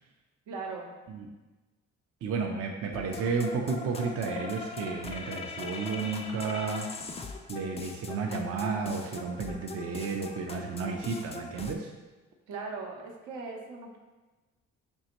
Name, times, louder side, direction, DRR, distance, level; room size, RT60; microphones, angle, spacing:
voice 1, 0.5-0.9 12.5-14.0, right 4 dB, 80° right, 0 dB, 0.8 m, -39 dB
voice 2, 2.2-6.9 7.5-11.9, right 5 dB, 50° right, 0 dB, 0.5 m, -32 dB
sound 1, 2.9-11.7, left 3 dB, 20° left, 0.3 m, -41 dB
5.3 x 2.5 x 2.9 m, 1.2 s
cardioid pair, 90°, 30 cm